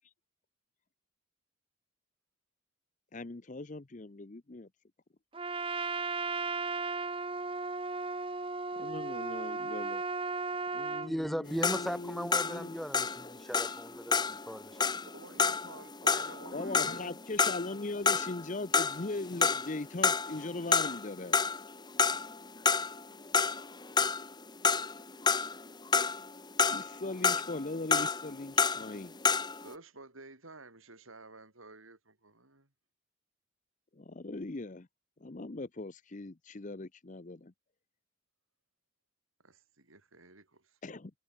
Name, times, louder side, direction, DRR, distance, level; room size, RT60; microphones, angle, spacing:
voice 1, 3.1-4.7 8.8-10.0 10.7-13.0 16.5-21.4 26.7-29.2 34.0-34.9 35.2-37.5 40.8-41.1, left 2 dB, 40° left, 0.7 m, -40 dB
Trumpet, 5.3-11.1, right 4 dB, 25° right, 1.5 m, -35 dB
voice 2, 11.0-14.9, equal, ahead, 1.4 m, -38 dB
sound 1, 11.5-18.5 18.7-19.8 20.0-21.1 21.3-29.7, left 5 dB, 20° left, 1.4 m, -29 dB
voice 3, 15.1-17.2 17.6-17.8 29.6-32.7 39.4-40.8, right 2 dB, 80° right, 5.0 m, -52 dB
head